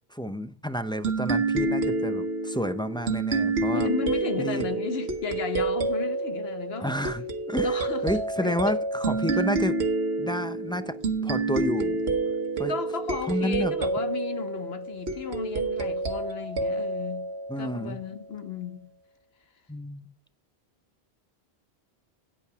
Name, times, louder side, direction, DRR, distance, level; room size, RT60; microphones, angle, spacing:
voice 1, 0.1-3.9 4.4-4.7 6.8-9.8 10.2-11.0 11.2-12.0 12.6-12.7 13.3-13.7 17.5-18.0 19.7-20.1, equal, 5° left, 0.5 m, -30 dB
sound 1, 1.0-18.2, right 3 dB, 75° right, 1.3 m, -28 dB
voice 2, 3.7-6.9 7.6-8.1 8.4-8.8 12.7-17.2 17.6-18.9, left 5 dB, 70° left, 1.2 m, -34 dB
9.1 x 8.5 x 4.8 m
omnidirectional pair, 1.1 m